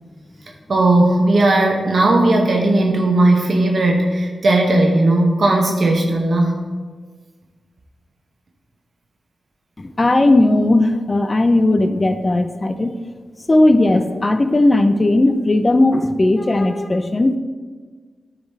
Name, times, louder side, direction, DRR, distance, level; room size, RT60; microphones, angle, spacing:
voice 1, 0.7-6.6, right 2 dB, 60° right, 0 dB, 0.9 m, -16 dB
voice 2, 9.8-12.9 13.5-17.4, left 2 dB, 35° left, 9 dB, 0.5 m, -16 dB
9.6 x 4.0 x 4.1 m, 1.5 s
cardioid pair, 50°, 0 cm